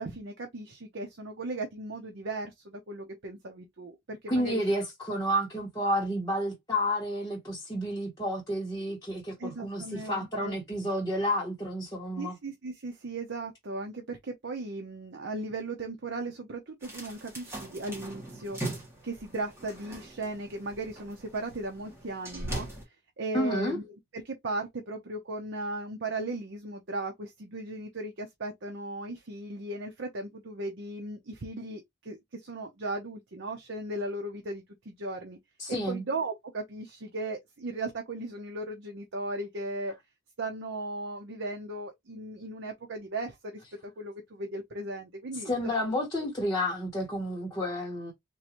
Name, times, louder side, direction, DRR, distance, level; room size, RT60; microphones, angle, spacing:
voice 1, 0.0-4.6 9.4-10.6 12.2-18.6 19.0-22.7 23.2-23.8 24.1-35.4 35.7-39.9 40.4-45.5, right 2 dB, 65° right, 0.7 m, -37 dB
voice 2, 4.3-12.4 23.3-23.8 35.6-36.0 45.4-48.1, equal, 15° left, 1.2 m, -30 dB
sound 1, 16.8-22.8, right 1 dB, 15° right, 1.4 m, -40 dB
3.8 x 2.6 x 3.0 m
head